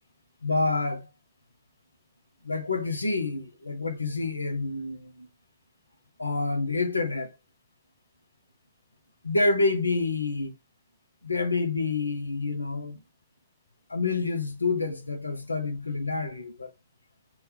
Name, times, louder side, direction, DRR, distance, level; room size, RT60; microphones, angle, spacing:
voice 1, 0.4-1.1 2.4-5.3 6.2-7.3 9.2-10.5 11.2-13.0 13.9-16.7, left 3 dB, 80° left, 0.5 m, -28 dB
4.1 x 2.3 x 3.4 m
figure-of-eight pair, 90°, 0 cm